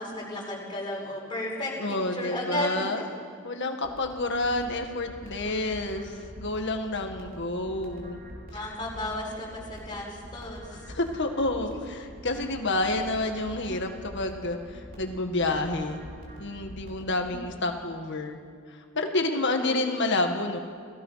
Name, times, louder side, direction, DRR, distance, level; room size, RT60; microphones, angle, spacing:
voice 1, 0.0-1.7 2.1-3.0 8.5-10.8 17.2-17.8 19.5-19.8, left 1 dB, 20° left, -3 dB, 5.5 m, -34 dB
voice 2, 1.8-3.0 3.4-6.1 6.4-8.2 10.9-16.0 16.4-18.4 18.9-20.6, left 2 dB, 55° left, 4 dB, 1.9 m, -29 dB
sound 1, 3.8-17.4, equal, 40° right, 4.2 m, -45 dB
29.5 x 17.5 x 5.9 m, 2.1 s
head